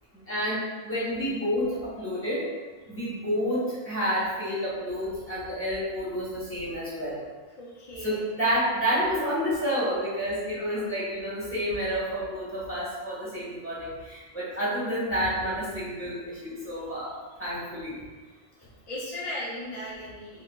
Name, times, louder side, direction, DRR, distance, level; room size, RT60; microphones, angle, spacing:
voice 1, 0.3-2.5 2.9-7.2 8.0-17.1 17.4-18.0, equal, 10° left, -9 dB, 1.1 m, -29 dB
voice 2, 7.6-8.2 10.6-10.9 18.9-20.4, left 1 dB, 35° left, -6 dB, 0.5 m, -37 dB
4.8 x 2.2 x 2.3 m, 1.3 s
omnidirectional pair, 1.3 m